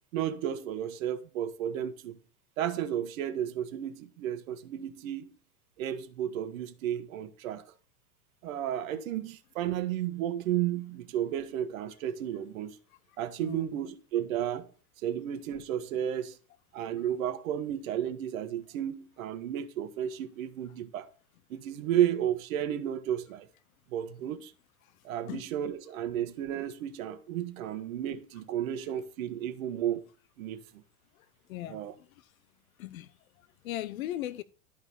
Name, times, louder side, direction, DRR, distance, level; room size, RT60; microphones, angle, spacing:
voice 1, 0.1-2.2 2.6-5.3 5.8-7.6 8.4-12.8 13.2-14.7 15.0-16.4 16.7-21.1 21.5-23.5 23.9-24.5 25.0-30.0 30.4-30.6 31.6-31.9, right 10 dB, 65° right, 1.3 m, -33 dB
voice 2, 13.1-13.8 17.0-17.1 24.8-25.4 31.1-32.3 32.8-34.4, left 13 dB, 70° left, 1.0 m, -40 dB
11.5 x 5.2 x 6.9 m
hypercardioid pair, 100°, 44 cm